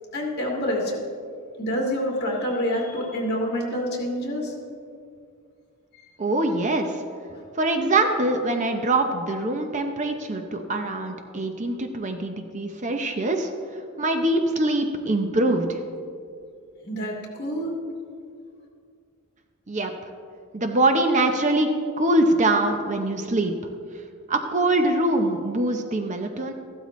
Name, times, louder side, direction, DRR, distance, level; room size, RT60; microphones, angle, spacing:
voice 1, 0.1-1.0 1.6-4.5 16.8-17.7, equal, 45° left, -1 dB, 2.2 m, -27 dB
voice 2, 6.2-7.0 7.6-13.5 14.0-15.8 19.7-19.9 20.5-23.5 24.3-26.5, right 2 dB, 35° right, 5 dB, 0.7 m, -23 dB
14.5 x 12.5 x 3.1 m, 2.3 s
head